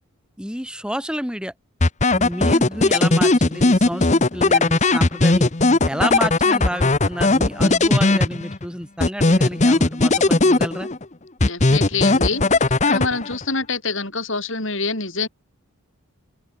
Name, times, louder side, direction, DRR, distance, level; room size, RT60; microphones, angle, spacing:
voice 1, 0.4-1.5 2.1-5.5 5.8-10.9, equal, 5° right, 5.9 m, -29 dB
sound 1, 1.8-8.6 9.0-11.0 11.4-13.4, left 2 dB, 35° left, 1.0 m, -17 dB
voice 2, 11.5-12.4 12.9-15.3, left 4 dB, 60° left, 7.6 m, -25 dB
open air
head